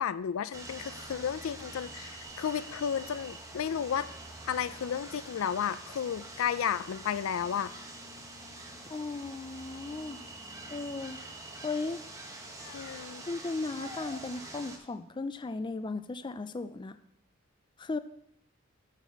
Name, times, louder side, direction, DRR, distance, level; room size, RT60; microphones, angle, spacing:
voice 1, 0.0-4.1 4.5-7.7 12.6-13.2, left 8 dB, 90° left, 16 dB, 0.4 m, -33 dB
sound 1, 0.5-14.8, right 2 dB, 15° right, 1.1 m, -45 dB
voice 2, 8.9-10.2 10.7-11.2 11.6-12.0 13.3-16.9 17.8-18.0, left 3 dB, 25° left, 12 dB, 0.4 m, -36 dB
11.0 x 4.1 x 5.8 m, 0.74 s
head